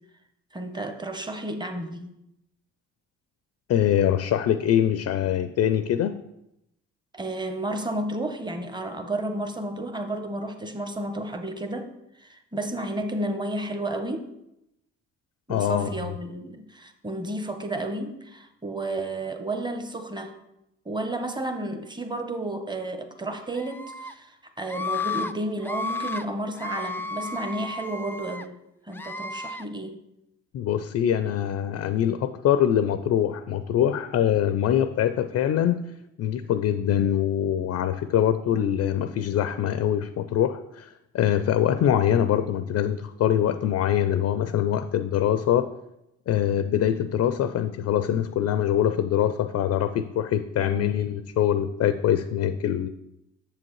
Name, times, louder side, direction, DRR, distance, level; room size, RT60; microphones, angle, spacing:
voice 1, 0.5-2.1 7.1-14.3 15.5-20.3 20.8-28.6 28.8-30.0 50.6-51.1, right 1 dB, 15° right, 6 dB, 1.0 m, -32 dB
voice 2, 3.7-6.1 15.5-15.9 30.5-35.8 36.2-40.9 41.1-45.7 46.3-52.9, left 10 dB, 55° left, 11 dB, 0.5 m, -23 dB
Screaming, 23.5-24.1 24.7-25.3 25.6-26.2 26.6-28.4 28.9-29.6, left 3 dB, 5° left, 0.4 m, -33 dB
7.7 x 7.1 x 3.2 m, 0.85 s
supercardioid pair, 70°, 31 cm